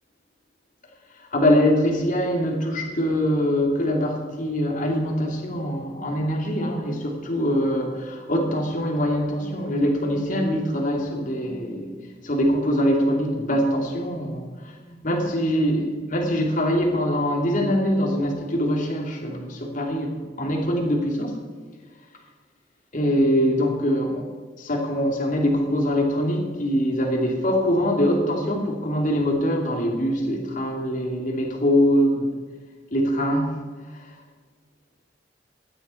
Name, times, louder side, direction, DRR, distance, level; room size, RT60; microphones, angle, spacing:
voice 1, 1.3-11.9 12.2-21.4 22.9-24.2 24.6-32.3 32.9-33.5, equal, 50° left, 1 dB, 2.8 m, -23 dB
17.0 x 12.0 x 4.5 m, 1.5 s
head